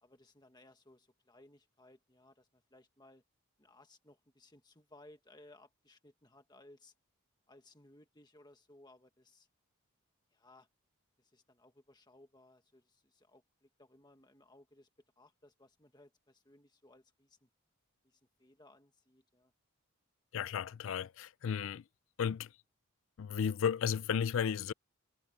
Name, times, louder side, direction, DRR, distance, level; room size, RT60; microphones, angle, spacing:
voice 1, 0.0-3.2 3.6-6.9 7.5-9.5 10.3-10.7 11.2-14.9 15.2-17.5 18.0-19.5, left 1 dB, 20° left, 1.6 m, -62 dB
voice 2, 20.3-21.8 22.2-22.5 23.2-24.7, left 7 dB, 65° left, 0.4 m, -34 dB
head